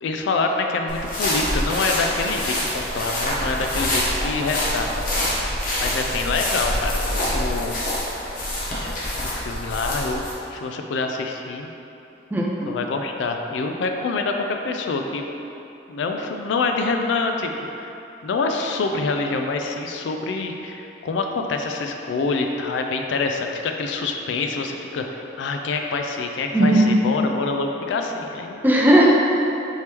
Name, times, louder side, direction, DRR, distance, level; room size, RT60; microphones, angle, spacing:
voice 1, 0.0-5.1 5.8-7.8 8.8-8.9 9.2-11.7 12.6-15.3 15.9-17.9 18.2-28.6, left 3 dB, 65° left, 4 dB, 0.3 m, -26 dB
sound 1, 0.9-10.3, left 1 dB, 45° left, 0.8 m, -26 dB
voice 2, 12.3-12.7 26.5-27.0 28.6-29.1, right 1 dB, 10° right, -3 dB, 0.4 m, -16 dB
4.5 x 3.4 x 2.9 m, 2.9 s
head